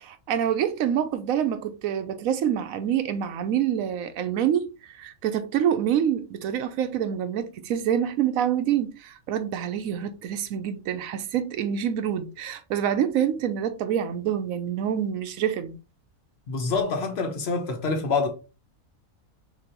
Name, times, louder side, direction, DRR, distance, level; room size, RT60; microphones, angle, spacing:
voice 1, 0.1-15.8, right 9 dB, 80° right, 1.0 m, -26 dB
voice 2, 16.5-18.3, left 4 dB, 50° left, 1.3 m, -26 dB
6.1 x 2.8 x 2.9 m
omnidirectional pair, 1.5 m